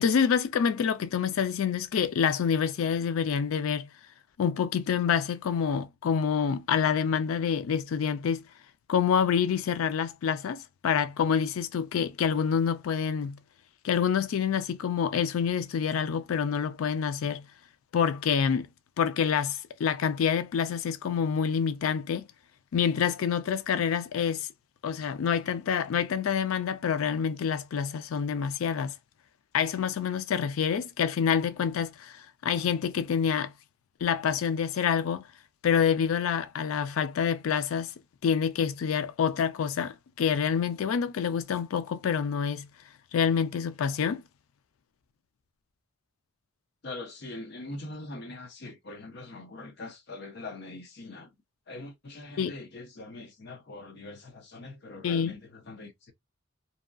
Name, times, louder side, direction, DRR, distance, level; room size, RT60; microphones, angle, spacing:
voice 1, 0.0-3.9 4.4-8.4 8.9-13.4 13.8-17.5 17.9-18.7 19.0-22.3 22.7-24.5 24.8-28.9 29.5-33.5 34.0-35.2 35.6-37.9 38.2-42.7 43.1-44.2 52.4-52.5 55.0-55.3, left 7 dB, 90° left, 0.4 m, -27 dB
voice 2, 46.8-51.3 51.7-56.1, left 2 dB, 55° left, 0.7 m, -42 dB
2.8 x 2.2 x 2.4 m
head